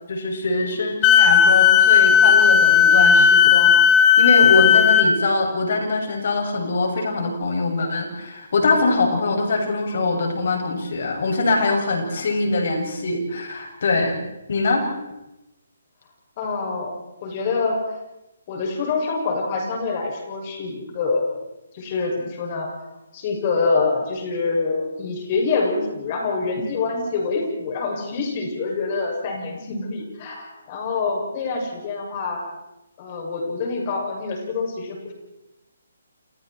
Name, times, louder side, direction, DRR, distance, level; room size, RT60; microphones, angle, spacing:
voice 1, 0.1-14.2 14.5-14.8, left 3 dB, 60° left, 2 dB, 7.5 m, -23 dB
Wind instrument woodwind instrument, 1.0-5.1, left 8 dB, 20° left, 1.8 m, -14 dB
voice 2, 16.4-16.9 17.2-17.8 18.5-21.3 21.7-22.7 23.1-32.5 33.0-35.1, left 4 dB, 35° left, 0 dB, 7.3 m, -26 dB
29.5 x 28.5 x 4.7 m, 0.95 s
hypercardioid pair, 145°, 0 cm